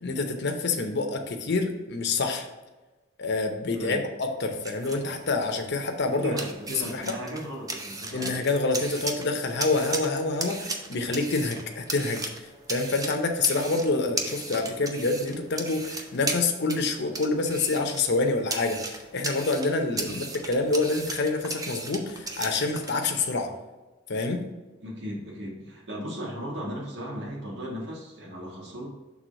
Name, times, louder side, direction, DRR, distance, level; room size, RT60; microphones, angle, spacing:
voice 1, 0.0-2.4 3.2-6.3 6.7-7.1 8.1-12.3 12.7-23.5 24.1-24.4, left 3 dB, 60° left, 4 dB, 0.8 m, -27 dB
voice 2, 3.7-4.1 6.1-8.3 19.9-20.2 24.8-28.9, equal, 65° right, -4 dB, 1.6 m, -36 dB
sound 1, 4.4-22.9, right 2 dB, 20° right, 0.6 m, -37 dB
6.2 x 3.5 x 5.1 m, 1.2 s
head